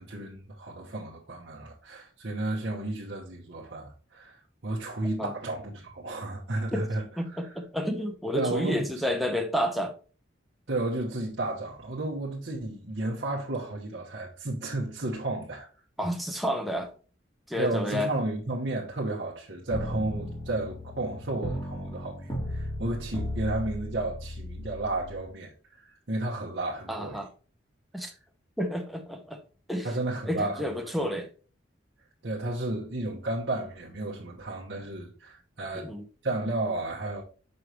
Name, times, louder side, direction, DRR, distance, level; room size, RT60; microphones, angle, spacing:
voice 1, 0.0-7.0 7.3-7.4 8.3-8.8 10.7-15.7 17.6-27.2 29.8-30.7 32.2-35.9 36.2-37.2, right 2 dB, 60° right, 1.1 m, -32 dB
voice 2, 7.2-9.9 16.0-16.9 17.5-18.1 26.9-27.3 27.9-28.1 28.6-29.4 29.7-29.9 30.3-31.3 35.7-36.0, equal, ahead, 0.8 m, -30 dB
sound 1, 19.7-25.2, left 1 dB, 20° left, 1.5 m, -36 dB
6.4 x 5.3 x 3.2 m
head